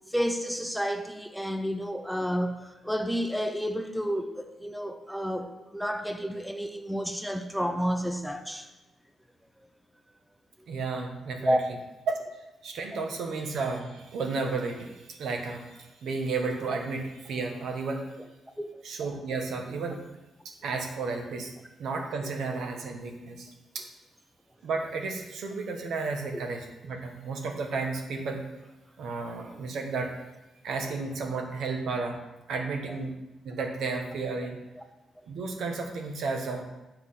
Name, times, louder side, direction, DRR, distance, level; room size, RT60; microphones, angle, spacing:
voice 1, 0.1-8.7 11.4-11.8 13.0-13.1 18.6-18.8 34.7-34.8, equal, ahead, 0.5 m, -30 dB
voice 2, 10.7-11.6 12.1-12.2 12.6-18.1 18.8-20.0 20.6-21.5 21.8-23.5 23.7-23.9 24.6-28.4 29.0-30.2 30.6-32.2 32.5-33.2 33.4-34.6 35.3-36.6, right 4 dB, 75° right, 1.2 m, -32 dB
7.9 x 4.7 x 5.7 m
cardioid pair, 135°, 0 cm